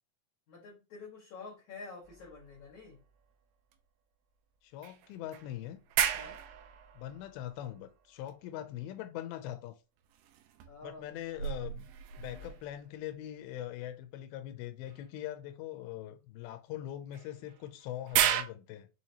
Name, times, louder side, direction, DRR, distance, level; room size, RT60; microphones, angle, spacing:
voice 1, 0.5-3.0 6.1-6.4 10.7-11.2, left 4 dB, 60° left, 2.4 m, -48 dB
sound 1, 2.0-3.4 3.7-3.8 4.8-8.3 10.1-13.1 14.9-15.0 17.1-18.4, right 10 dB, 85° right, 2.4 m, -35 dB
voice 2, 4.6-5.8 6.9-9.8 10.8-11.9 12.2-18.9, left 12 dB, 80° left, 2.5 m, -42 dB
6.3 x 3.0 x 2.8 m
omnidirectional pair, 4.4 m